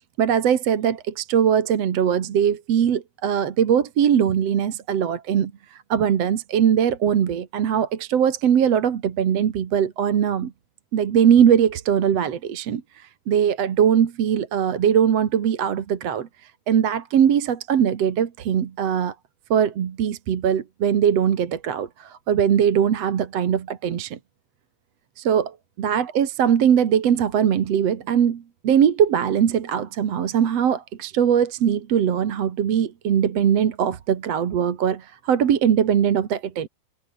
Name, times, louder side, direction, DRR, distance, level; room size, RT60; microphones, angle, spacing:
voice 1, 0.2-10.5 10.9-12.8 13.3-16.3 16.7-19.1 19.5-24.2 25.2-36.7, right 8 dB, 55° right, 2.6 m, -21 dB
omnidirectional pair, 3.9 m